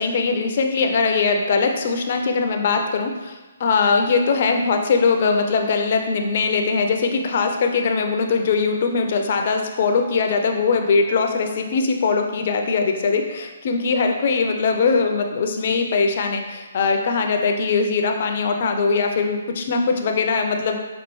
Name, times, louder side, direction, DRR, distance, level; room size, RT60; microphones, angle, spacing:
voice 1, 0.0-20.8, left 4 dB, 50° left, 4 dB, 0.5 m, -21 dB
5.3 x 2.4 x 3.1 m, 1.2 s
hypercardioid pair, 145°, 0 cm